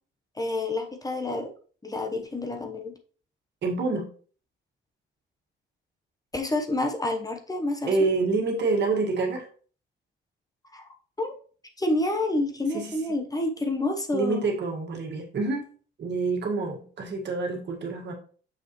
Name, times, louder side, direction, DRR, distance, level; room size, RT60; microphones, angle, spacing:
voice 1, 0.4-1.5 1.8-2.9 6.3-8.1 10.7-10.9 11.2-11.3 11.8-14.4, left 2 dB, 20° left, 4 dB, 1.0 m, -28 dB
voice 2, 3.6-4.1 7.9-9.5 12.7-13.2 14.1-15.6 16.0-18.1, right 3 dB, 60° right, 1 dB, 1.8 m, -27 dB
6.7 x 5.4 x 3.1 m, 0.41 s
cardioid pair, 90°, 20 cm